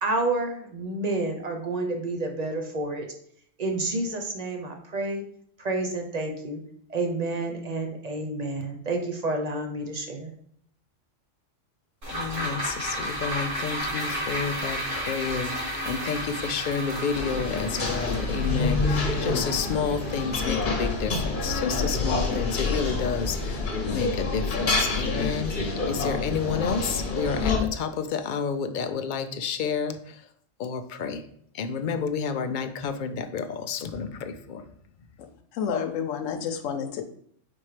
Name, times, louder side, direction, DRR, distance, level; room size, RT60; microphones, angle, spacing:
voice 1, 0.0-3.1 3.6-5.2 5.6-6.6 6.9-10.3, right 2 dB, 35° right, 3 dB, 0.8 m, -29 dB
sound 1, 12.0-22.5 22.9-23.0, equal, 65° right, 2.7 m, -33 dB
voice 2, 12.1-23.7 23.9-30.3 30.6-31.2 31.5-34.6, left 6 dB, 60° left, 8 dB, 0.5 m, -30 dB
sound 2, 17.1-27.6, left 3 dB, 45° left, 1.0 m, -27 dB
voice 3, 35.5-37.0, left 7 dB, 75° left, 6 dB, 1.0 m, -29 dB
4.5 x 4.3 x 4.9 m, 0.65 s
omnidirectional pair, 1.3 m